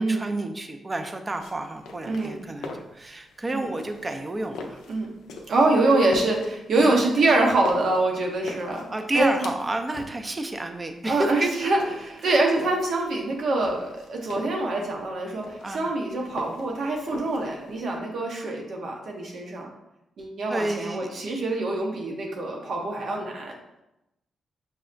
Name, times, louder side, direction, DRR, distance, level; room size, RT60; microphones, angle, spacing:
voice 1, 0.0-4.8 6.8-7.0 8.9-11.5 15.6-16.0 20.5-21.3, right 2 dB, 30° right, 6 dB, 0.5 m, -30 dB
sound 1, 1.3-17.9, left 3 dB, 85° left, 0.4 m, -42 dB
voice 2, 2.0-2.4 3.5-3.7 4.9-5.1 5.5-8.9 9.1-9.5 11.1-19.7 20.2-23.5, right 2 dB, 70° right, 1 dB, 0.8 m, -25 dB
5.6 x 2.0 x 2.5 m, 0.90 s
supercardioid pair, 55°, 0 cm